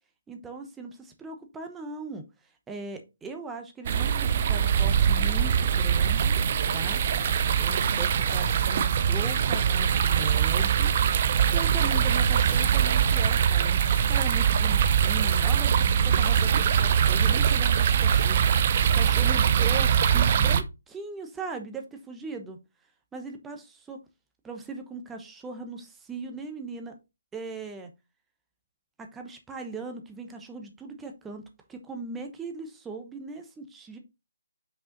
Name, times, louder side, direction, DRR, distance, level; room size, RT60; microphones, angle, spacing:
voice 1, 0.3-6.4 6.7-7.0 7.6-10.9 11.5-15.7 16.0-22.6 23.1-24.0 24.4-26.9 27.3-27.9 29.0-31.4 31.7-34.0, right 3 dB, 10° right, 4 dB, 1.0 m, -39 dB
sound 1, 3.9-20.6, right 8 dB, 40° right, 0.7 m, -23 dB
6.0 x 5.2 x 3.9 m, 0.25 s
figure-of-eight pair, 145°, 0 cm